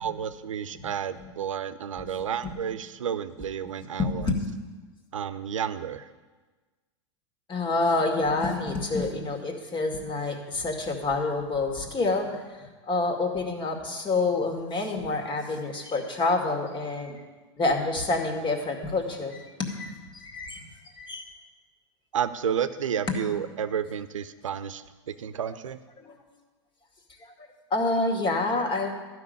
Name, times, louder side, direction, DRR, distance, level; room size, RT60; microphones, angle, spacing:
voice 1, 0.0-4.3 5.1-6.1 22.1-25.8, right 8 dB, 90° right, 13 dB, 0.7 m, -31 dB
voice 2, 3.8-4.4 7.5-17.2 17.6-20.7 21.0-21.2 23.1-23.2 26.0-26.2 27.2-28.9, left 3 dB, 30° left, 3 dB, 2.2 m, -28 dB
12.5 x 6.2 x 9.5 m, 1.3 s
hypercardioid pair, 100°, 16 cm